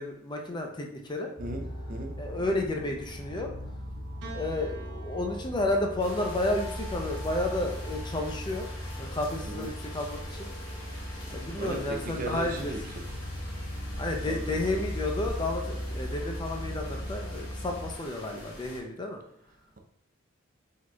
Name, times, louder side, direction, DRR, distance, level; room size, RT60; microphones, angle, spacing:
voice 1, 0.0-1.3 2.2-3.5 4.3-8.7 9.0-10.5 11.3-12.7 14.0-19.2, left 2 dB, 20° left, 0.5 m, -31 dB
sound 1, 1.4-17.9, equal, 10° right, 1.0 m, -38 dB
voice 2, 1.4-2.2 9.4-9.7 11.6-12.9 14.3-14.6, right 1 dB, 40° right, 0.5 m, -37 dB
Piano, 4.2-8.7 9.7-10.5, right 1 dB, 60° right, 0.9 m, -50 dB
sound 2, 6.0-18.8, left 1 dB, 75° left, 1.8 m, -45 dB
4.9 x 3.9 x 2.3 m
head